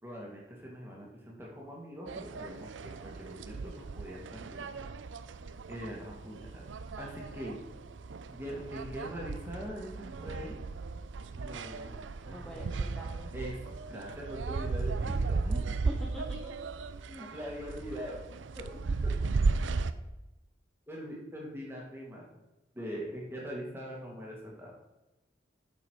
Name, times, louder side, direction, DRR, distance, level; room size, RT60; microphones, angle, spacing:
voice 1, 0.0-4.7 5.7-6.6 7.0-7.6 8.3-10.6 11.3-12.7 13.3-15.8 16.4-16.5 17.1-18.2 18.6-18.7 19.0-19.1 20.9-22.2 22.7-24.7, equal, 10° right, -3 dB, 2.1 m, -42 dB
sound 1, 2.1-19.9, right 4 dB, 80° right, 0.5 m, -36 dB
voice 2, 12.3-13.3 16.0-16.2, equal, 5° left, -2 dB, 0.9 m, -46 dB
8.4 x 6.7 x 4.7 m, 1.0 s
head